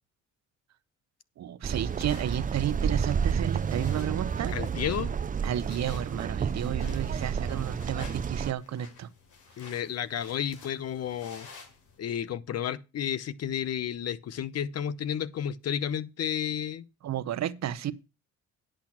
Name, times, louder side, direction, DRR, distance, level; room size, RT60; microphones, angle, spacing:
voice 1, 1.4-4.6 5.4-9.1 17.0-17.9, right 11 dB, 60° right, 0.9 m, -32 dB
sound 1, 1.6-8.5, right 6 dB, 25° right, 0.5 m, -30 dB
sound 2, 1.7-12.0, left 4 dB, 90° left, 3.9 m, -52 dB
voice 2, 4.5-5.1 9.6-11.5 12.0-16.8, left 9 dB, 55° left, 0.8 m, -32 dB
10.5 x 6.3 x 5.9 m
cardioid pair, 90°, 30 cm